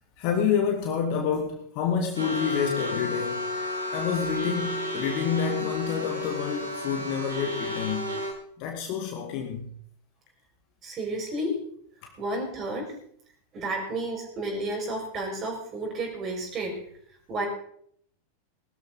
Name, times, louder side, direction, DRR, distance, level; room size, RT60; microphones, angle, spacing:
voice 1, 0.2-3.5 3.9-8.2 8.6-9.8 12.0-12.1, left 7 dB, 45° left, 2 dB, 2.1 m, -28 dB
sound 1, 2.2-8.3, left 1 dB, 85° right, 6.2 m, -32 dB
voice 2, 10.8-11.6 12.2-12.9 13.5-16.8 17.3-17.5, right 1 dB, 30° right, 1 dB, 6.3 m, -31 dB
20.5 x 13.0 x 4.2 m, 0.66 s
figure-of-eight pair, 90°, 0 cm